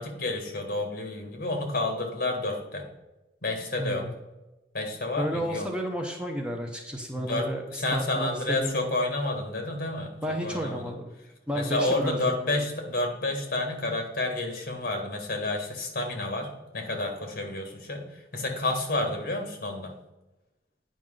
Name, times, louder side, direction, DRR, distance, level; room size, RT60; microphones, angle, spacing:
voice 1, 0.0-2.8 3.4-4.1 4.7-5.7 7.2-7.5 7.7-10.1 10.4-10.9 11.5-19.9, left 2 dB, 55° left, 3 dB, 1.6 m, -30 dB
voice 2, 3.8-4.1 5.2-8.8 10.2-11.1 11.5-12.6, equal, 5° right, 2 dB, 0.7 m, -32 dB
9.0 x 5.3 x 3.8 m, 1.0 s
head